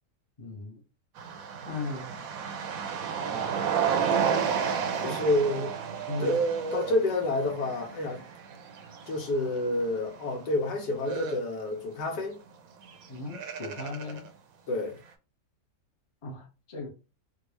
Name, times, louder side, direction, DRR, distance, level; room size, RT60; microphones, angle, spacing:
voice 1, 0.4-0.8 1.7-2.2 5.0-5.2 6.1-6.4 13.1-14.2 16.2-16.9, left 3 dB, 30° left, 0.6 m, -37 dB
sound 1, 1.2-9.8 10.1-10.3 11.0-11.4 12.9-13.0 13.3-14.3, right 7 dB, 70° right, 0.9 m, -31 dB
voice 2, 3.2-3.7 5.0-5.8 6.2-6.4 6.7-8.3 9.1-12.4 14.7-15.0, left 2 dB, 85° left, 1.4 m, -29 dB
3.6 x 2.3 x 3.0 m
omnidirectional pair, 1.8 m